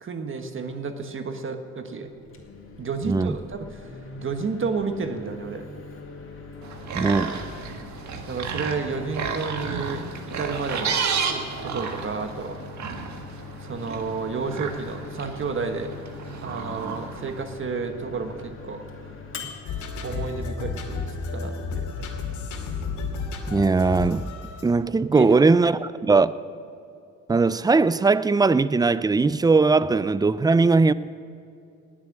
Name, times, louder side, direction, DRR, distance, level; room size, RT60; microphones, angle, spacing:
voice 1, 0.0-2.1 2.8-3.7 4.2-5.7 8.3-11.0 11.3-12.6 13.6-15.9 16.4-18.8 20.0-22.1 25.1-25.5, right 4 dB, 40° right, 1.3 m, -31 dB
Microwave oven, 2.1-20.9, left 4 dB, 45° left, 2.7 m, -42 dB
voice 2, 3.0-3.4 6.9-7.4 23.5-24.3 24.6-26.3 27.3-30.9, right 4 dB, 15° right, 0.4 m, -19 dB
sound 1, 6.6-17.4, right 5 dB, 65° right, 1.7 m, -32 dB
sound 2, 19.7-24.6, left 4 dB, 85° left, 2.4 m, -32 dB
19.0 x 7.6 x 8.8 m
cardioid pair, 90°, 30 cm